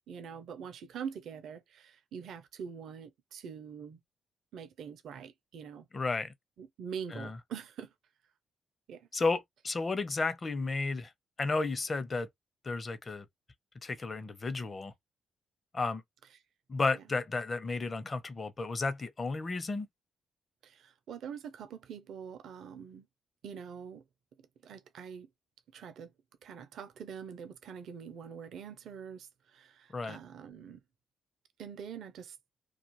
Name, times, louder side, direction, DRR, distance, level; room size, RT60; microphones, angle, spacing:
voice 1, 0.1-4.0 4.5-5.9 6.6-7.9 8.9-9.1 16.9-17.0 20.6-23.1 23.4-24.0 24.4-25.3 25.7-26.1 26.4-30.8 31.6-32.4, right 7 dB, 65° right, 0.5 m, -44 dB
voice 2, 5.9-6.3 7.1-7.4 9.1-11.1 11.4-12.3 12.6-13.2 13.8-14.9 15.7-16.0 16.7-19.9 29.9-30.2, left 3 dB, 40° left, 0.7 m, -33 dB
2.4 x 2.3 x 2.9 m
hypercardioid pair, 45°, 0 cm